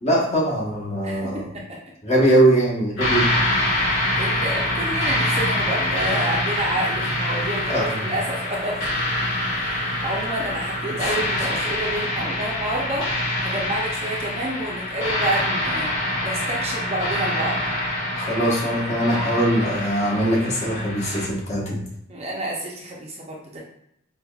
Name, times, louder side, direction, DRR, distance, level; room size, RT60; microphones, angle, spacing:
voice 1, 0.0-1.5 2.0-3.3 7.7-8.1 10.9-11.0 18.2-21.8, right 1 dB, 35° left, -4 dB, 1.1 m, -21 dB
voice 2, 1.0-1.8 4.1-13.1 13.4-15.9 16.2-17.6 22.1-23.6, right 1 dB, 30° right, -2 dB, 0.6 m, -29 dB
sound 1, 3.0-21.3, left 1 dB, 65° left, 0.9 m, -25 dB
4.8 x 2.3 x 2.3 m, 0.76 s
head